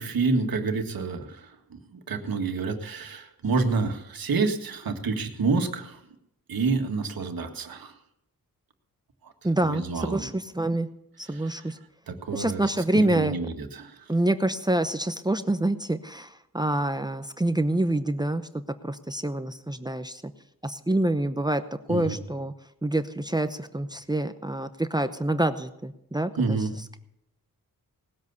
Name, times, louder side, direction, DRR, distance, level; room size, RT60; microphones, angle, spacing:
voice 1, 0.0-6.0 6.5-7.9 9.2-9.3 9.6-10.3 11.3-11.6 12.1-12.6 12.9-14.0 21.9-22.2 26.4-26.7, right 4 dB, 75° right, 5 dB, 1.8 m, -28 dB
voice 2, 9.4-10.9 11.2-11.8 12.3-13.3 14.1-20.3 20.6-21.6 21.9-22.5 22.8-26.6, right 1 dB, 10° right, 10 dB, 0.7 m, -27 dB
19.0 x 8.0 x 6.9 m, 0.78 s
wide cardioid pair, 85°, 36 cm